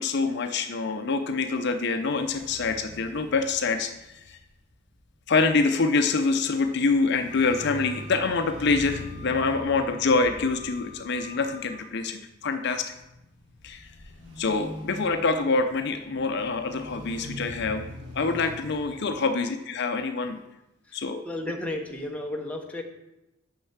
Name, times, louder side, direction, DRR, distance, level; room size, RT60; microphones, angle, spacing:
voice 1, 0.0-4.4 5.3-12.9 13.6-13.9 14.4-17.9 18.1-20.4 20.9-21.2, left 4 dB, 55° left, 7 dB, 0.5 m, -26 dB
sound 1, 1.8-19.0, left 1 dB, 60° right, 2.1 m, -44 dB
Wind instrument woodwind instrument, 7.3-11.8, left 5 dB, 45° right, 1.8 m, -47 dB
voice 2, 21.2-22.8, left 1 dB, 5° left, 1 dB, 0.9 m, -33 dB
6.6 x 5.5 x 7.2 m, 0.96 s
head